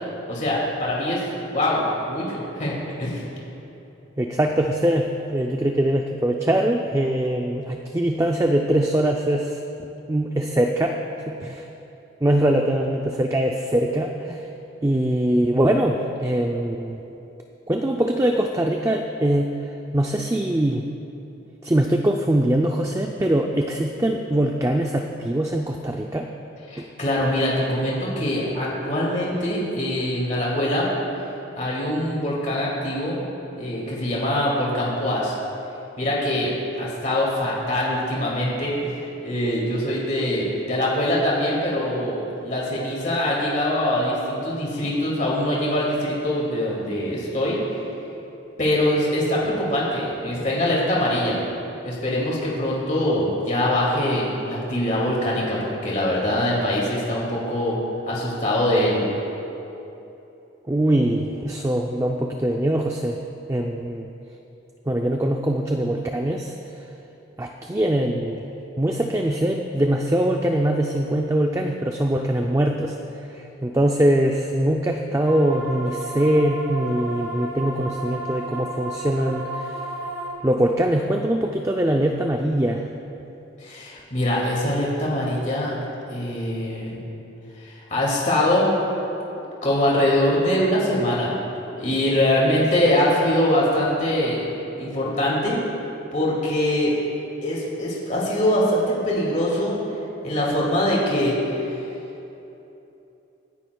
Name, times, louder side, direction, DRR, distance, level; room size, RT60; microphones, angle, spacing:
voice 1, 0.3-1.2 1.5-3.2 26.7-30.9 31.5-33.2 33.5-35.3 36.0-47.6 48.6-51.4 51.8-57.8 58.1-59.0 83.6-85.8 86.1-87.0 87.6-88.7 89.6-91.3 91.7-94.4 94.8-95.6 96.1-96.9 97.4-99.8 100.2-101.8, left 1 dB, 40° left, -5 dB, 2.3 m, -23 dB
voice 2, 4.2-11.0 11.3-11.7 12.2-14.5 14.8-17.0 17.7-20.9 21.6-26.3 26.8-26.9 60.7-63.2 63.5-64.1 64.9-66.5 67.4-73.0 73.3-79.8 80.4-82.9, right 1 dB, 15° right, 2 dB, 0.4 m, -22 dB
sound 1, 75.2-80.3, right 1 dB, 85° right, 1.7 m, -33 dB
25.0 x 9.9 x 2.3 m, 2.9 s
head